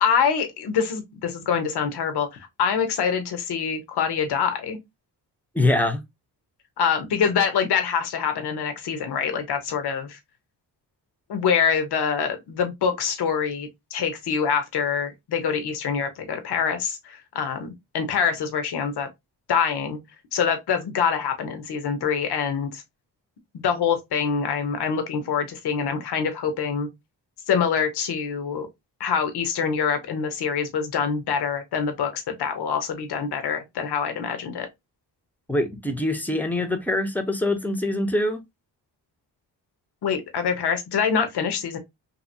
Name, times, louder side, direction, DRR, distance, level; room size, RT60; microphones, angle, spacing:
voice 1, 0.0-4.8 6.8-10.2 11.3-19.1 19.5-20.0 20.3-22.8 23.5-26.9 27.5-28.7 29.0-34.7 40.0-41.8, left 6 dB, 65° left, 0.8 m, -25 dB
voice 2, 5.5-6.0 35.5-38.4, left 1 dB, 5° left, 0.7 m, -24 dB
2.8 x 2.7 x 2.6 m
cardioid pair, 65°, 43 cm